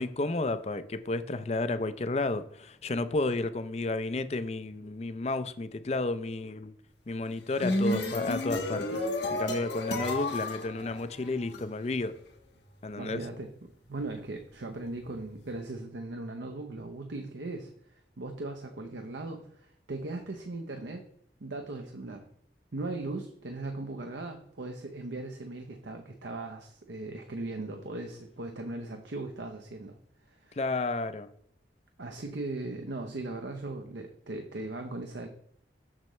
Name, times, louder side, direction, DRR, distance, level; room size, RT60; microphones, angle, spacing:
voice 1, 0.0-6.7 7.1-9.0 9.3-12.1 12.8-13.2 30.6-31.3, left 2 dB, 35° left, 0.4 m, -32 dB
sound 1, 7.3-11.6, left 1 dB, 75° left, 1.3 m, -32 dB
voice 2, 13.0-21.1 21.4-22.3 22.7-30.0 30.3-30.6 32.0-35.3, right 2 dB, 80° right, 0.7 m, -38 dB
7.5 x 6.6 x 3.1 m
head